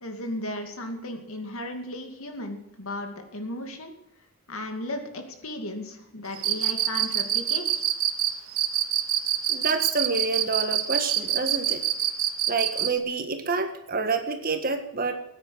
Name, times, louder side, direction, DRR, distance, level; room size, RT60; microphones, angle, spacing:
voice 1, 0.0-3.9 4.5-7.8, left 1 dB, 70° left, 5 dB, 2.4 m, -35 dB
Cricket, 6.4-13.0, right 11 dB, 75° right, 1.1 m, -25 dB
voice 2, 9.5-11.8 12.5-15.1, right 4 dB, 40° right, 6 dB, 1.6 m, -28 dB
15.5 x 9.6 x 7.8 m, 0.77 s
head